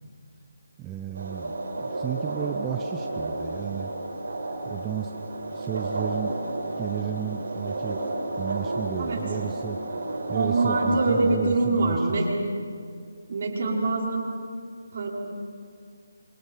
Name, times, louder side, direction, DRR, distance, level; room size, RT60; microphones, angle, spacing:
voice 1, 0.8-3.9 4.6-5.1 5.5-6.4 6.8-8.1 8.4-9.8 10.3-12.2, right 10 dB, 15° right, 5 dB, 0.8 m, -33 dB
sound 1, 1.1-11.4, right 2 dB, 70° right, 6.0 m, -32 dB
voice 2, 10.3-12.3 13.3-14.3 14.9-15.1, right 2 dB, 50° right, -2 dB, 5.8 m, -24 dB
28.5 x 27.0 x 5.8 m, 2.2 s
figure-of-eight pair, 160°, 0 cm